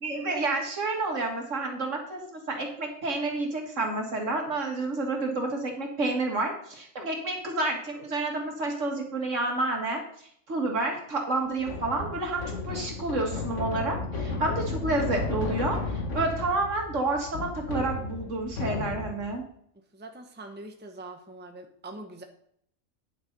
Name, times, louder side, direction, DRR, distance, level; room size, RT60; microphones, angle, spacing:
voice 1, 0.0-10.0 10.5-15.8 16.1-19.4, right 2 dB, 65° right, 2 dB, 2.4 m, -29 dB
sound 1, 11.6-19.4, left 3 dB, 65° left, 1.7 m, -33 dB
voice 2, 19.9-22.2, right 2 dB, 10° right, 4 dB, 1.0 m, -43 dB
9.9 x 6.7 x 5.4 m, 0.65 s
omnidirectional pair, 1.4 m